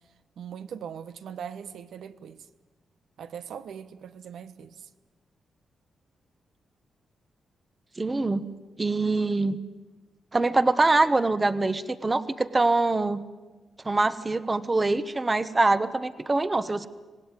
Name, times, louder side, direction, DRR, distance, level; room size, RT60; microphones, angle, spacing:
voice 1, 0.4-2.5 3.2-4.9, right 8 dB, 80° right, 1.2 m, -40 dB
voice 2, 8.0-8.5 8.8-9.6 10.3-13.2 13.8-16.9, right 2 dB, 20° right, 1.0 m, -24 dB
26.0 x 18.5 x 9.6 m
wide cardioid pair, 130°, 0 cm